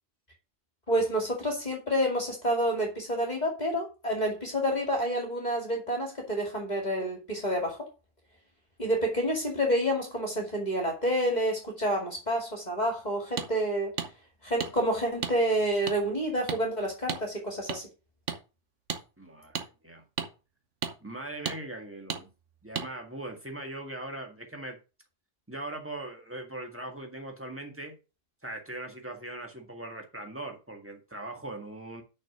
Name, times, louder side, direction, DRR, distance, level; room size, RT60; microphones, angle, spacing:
voice 1, 0.9-7.9 8.8-13.9 14.4-17.9, equal, 35° left, 2.6 m, -28 dB
sound 1, 13.4-13.5 14.0-14.1 14.6-14.7 15.2-15.4 15.9-16.0 16.5-16.6 17.1-17.2 17.7-17.8 18.3-18.4 18.9-19.0 19.6-19.7 20.2-20.3 20.8-20.9 21.5-21.6 22.1-22.2 22.8-22.9, right 7 dB, 85° right, 1.4 m, -32 dB
voice 2, 19.2-20.0 21.0-22.3 22.6-24.8 25.5-28.0 28.4-32.0, right 1 dB, 10° right, 1.8 m, -40 dB
6.5 x 6.0 x 6.1 m
omnidirectional pair, 1.2 m